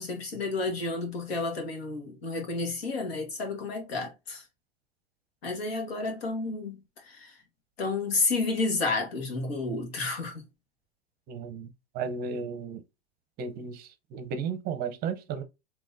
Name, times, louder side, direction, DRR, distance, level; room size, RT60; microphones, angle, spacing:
voice 1, 0.0-4.4 5.4-6.8 7.1-7.3 7.8-10.4, left 3 dB, 85° left, 1.6 m, -31 dB
voice 2, 11.3-11.7 11.9-12.8 13.4-15.4, right 5 dB, 30° right, 0.6 m, -34 dB
3.6 x 3.0 x 2.5 m
supercardioid pair, 135°, 30 cm